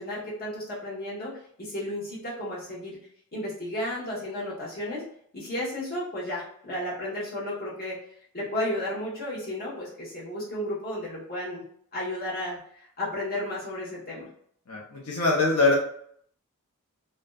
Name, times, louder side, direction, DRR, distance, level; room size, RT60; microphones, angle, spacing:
voice 1, 0.0-3.0 3.3-5.0 5.3-8.0 8.3-11.6 11.9-14.3, left 1 dB, 45° left, -7 dB, 1.0 m, -33 dB
voice 2, 14.7-15.8, left 3 dB, 90° left, -3 dB, 0.6 m, -23 dB
2.5 x 2.2 x 2.2 m, 0.65 s
head